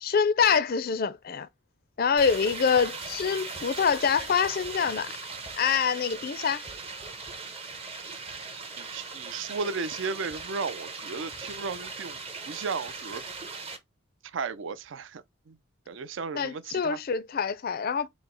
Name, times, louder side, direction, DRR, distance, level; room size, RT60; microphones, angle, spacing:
voice 1, 0.0-1.5 2.0-5.1 5.6-6.7 16.4-18.1, left 6 dB, 45° left, 0.4 m, -25 dB
sound 1, 2.2-13.8, right 4 dB, 30° right, 0.7 m, -39 dB
voice 2, 8.8-12.2 12.5-13.2 14.2-15.6 15.9-17.0, right 4 dB, 60° right, 0.4 m, -35 dB
4.8 x 2.0 x 3.7 m
head